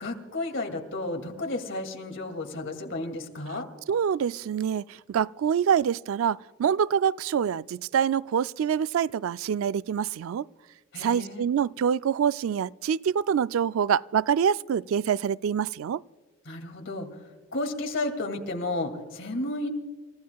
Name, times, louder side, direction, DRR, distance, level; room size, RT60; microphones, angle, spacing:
voice 1, 0.0-3.7 10.9-11.5 16.5-17.1 17.5-19.7, left 2 dB, 65° left, 2.4 m, -32 dB
voice 2, 3.9-10.4 11.0-16.0, right 8 dB, 70° right, 0.3 m, -26 dB
29.0 x 15.0 x 2.3 m
head